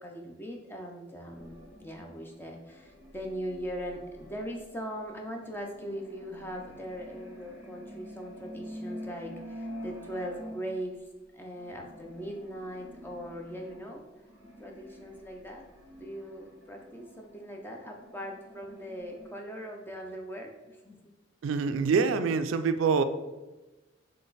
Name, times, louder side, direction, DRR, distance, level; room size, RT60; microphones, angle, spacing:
voice 1, 0.0-11.0 11.3-14.0 14.6-15.7 15.9-21.0, equal, 10° left, 2 dB, 0.5 m, -40 dB
sound 1, 1.3-11.0 11.5-19.3, equal, 15° right, 1.4 m, -47 dB
voice 2, 21.4-23.0, right 5 dB, 80° right, 11 dB, 0.3 m, -25 dB
3.9 x 3.3 x 3.9 m, 1.1 s
head